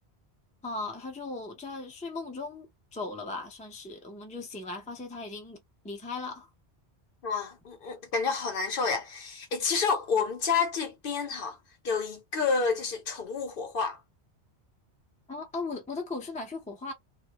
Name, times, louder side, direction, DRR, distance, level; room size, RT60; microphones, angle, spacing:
voice 1, 0.6-5.6 5.8-6.5 15.3-16.9, left 3 dB, 10° left, 0.4 m, -37 dB
voice 2, 7.2-11.6 11.8-14.0, left 5 dB, 60° left, 0.8 m, -29 dB
2.3 x 2.0 x 2.9 m
omnidirectional pair, 1.1 m